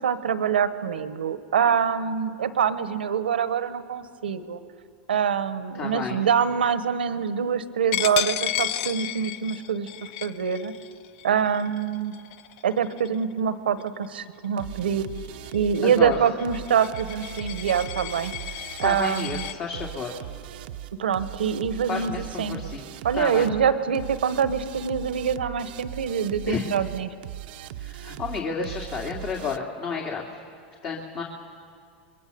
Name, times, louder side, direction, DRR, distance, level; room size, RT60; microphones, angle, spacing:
voice 1, 0.0-4.6 5.1-9.9 10.2-10.7 11.2-12.1 12.6-15.1 15.5-18.3 18.8-19.5 21.0-22.6 23.0-27.1, right 7 dB, 90° right, 13 dB, 1.2 m, -25 dB
voice 2, 5.7-6.2 15.8-16.2 18.8-20.2 21.9-22.9 23.2-23.5 26.5-26.7 27.8-30.2 30.8-31.2, left 5 dB, 40° left, -1 dB, 2.4 m, -31 dB
Coin (dropping), 7.9-13.3 13.8-14.1 14.4-19.6, left 12 dB, 60° left, 0.8 m, -33 dB
sound 1, 14.6-29.6, right 12 dB, 70° right, 0.8 m, -39 dB
27.0 x 22.0 x 6.9 m, 2.2 s
hypercardioid pair, 110°, 5 cm